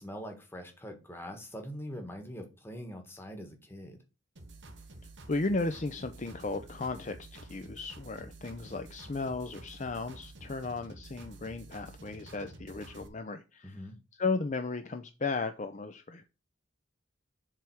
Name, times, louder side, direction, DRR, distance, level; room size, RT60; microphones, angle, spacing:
voice 1, 0.0-4.0 13.6-14.0, equal, 10° left, 1.3 m, -43 dB
sound 1, 4.4-13.1, right 2 dB, 60° right, 1.2 m, -50 dB
voice 2, 5.3-13.8 14.2-16.2, left 3 dB, 35° left, 0.5 m, -35 dB
7.5 x 3.4 x 6.1 m
head